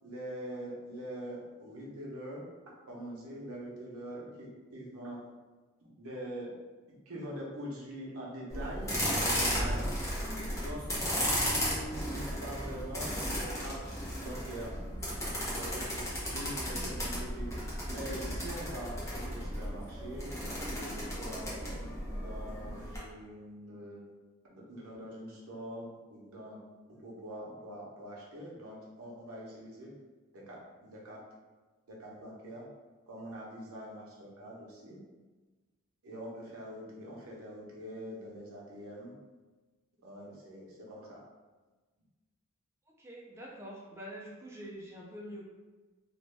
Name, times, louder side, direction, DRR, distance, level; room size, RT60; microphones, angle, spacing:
voice 1, 0.0-2.4 2.9-5.2 5.8-6.5 6.9-8.9 9.2-9.9 10.5-10.8 11.5-13.8 14.2-14.7 15.5-17.5 17.9-20.3 20.7-24.0 24.5-26.6 26.9-29.9 30.3-31.2 31.9-32.6 33.1-35.0 36.0-39.1 40.0-41.2, right 1 dB, 80° right, -4 dB, 0.8 m, -44 dB
sound 1, 8.5-23.0, equal, 15° left, 0.8 m, -35 dB
voice 2, 43.0-45.4, equal, 10° right, -4 dB, 0.4 m, -45 dB
2.6 x 2.2 x 3.1 m, 1.3 s
head